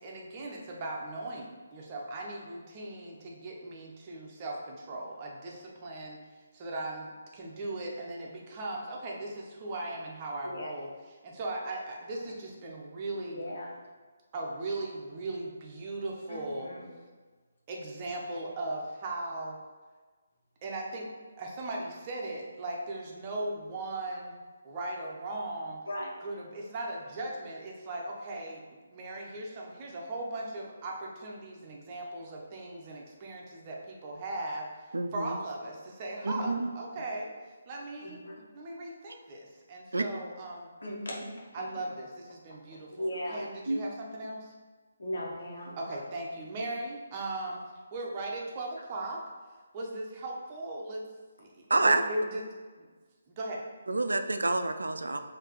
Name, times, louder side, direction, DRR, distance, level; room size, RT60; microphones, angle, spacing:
voice 1, 0.0-6.2 6.5-10.9 11.2-13.5 14.3-16.7 17.7-19.6 20.6-21.1 21.4-24.4 24.6-25.8 26.2-28.6 28.9-34.7 35.1-37.3 37.7-38.2 38.5-40.7 41.5-44.5 45.8-47.6 47.9-49.2 49.7-51.0 51.4-52.4 52.8-52.9 53.3-53.6, right 2 dB, 30° right, -2 dB, 0.8 m, -38 dB
voice 2, 13.1-13.8 16.3-17.0 25.9-26.2 36.4-36.6 38.0-38.3 40.1-40.2 40.8-41.9 42.9-43.5 45.0-46.0, equal, 70° left, -3 dB, 1.3 m, -38 dB
voice 3, 34.9-35.4 36.2-36.6 39.9-40.0 43.7-43.8 51.7-52.0 53.9-55.2, right 2 dB, 85° right, 8 dB, 0.4 m, -27 dB
5.7 x 2.8 x 3.1 m, 1.4 s
figure-of-eight pair, 155°, 0 cm